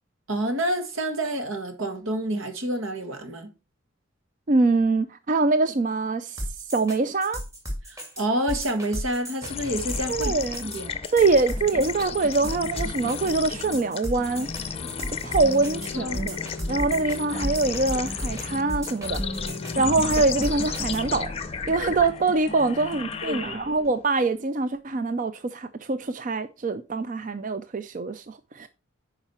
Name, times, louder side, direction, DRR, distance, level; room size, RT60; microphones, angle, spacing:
voice 1, 0.3-3.5 7.9-10.3 10.6-11.0 15.9-16.2 22.6-22.7 23.2-23.6, right 1 dB, 85° right, 1.6 m, -28 dB
voice 2, 4.5-6.4 6.7-7.4 10.1-10.6 11.1-14.5 15.1-16.4 16.7-19.2 19.8-21.3 21.7-28.7, right 3 dB, 40° right, 0.4 m, -24 dB
sound 1, 6.4-21.0, equal, 15° right, 2.1 m, -34 dB
sound 2, 9.4-24.0, left 6 dB, 30° left, 0.6 m, -34 dB
sound 3, 11.5-23.2, left 3 dB, 5° left, 1.4 m, -39 dB
10.0 x 4.9 x 4.3 m
head